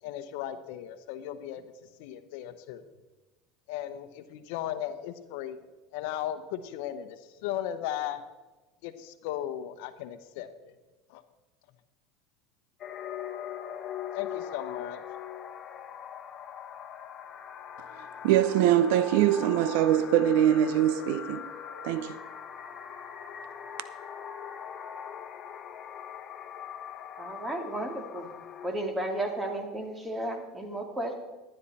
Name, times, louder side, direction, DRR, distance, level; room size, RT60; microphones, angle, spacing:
voice 1, 0.0-2.8 3.7-5.6 5.9-8.2 8.8-10.7 11.1-11.2 14.1-15.0, left 11 dB, 70° left, 0.9 m, -36 dB
sound 1, 12.8-28.7, left 8 dB, 40° left, 1.1 m, -41 dB
voice 2, 18.2-21.5 21.8-22.2, right 11 dB, 70° right, 0.5 m, -23 dB
voice 3, 27.2-28.3 28.6-31.1, right 1 dB, 15° right, 2.5 m, -33 dB
12.5 x 9.9 x 4.2 m
hypercardioid pair, 90°, 0 cm